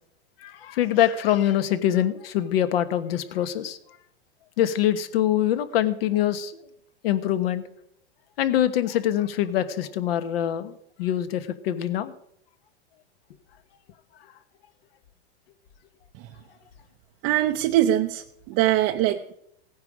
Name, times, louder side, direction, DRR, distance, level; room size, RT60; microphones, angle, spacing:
voice 1, 0.4-3.8 4.6-6.5 7.0-7.6 8.4-12.1, left 11 dB, 60° left, 11 dB, 1.4 m, -24 dB
voice 2, 17.2-19.3, right 13 dB, 35° right, 3 dB, 0.6 m, -22 dB
17.0 x 9.6 x 4.9 m, 0.75 s
supercardioid pair, 150°, 33 cm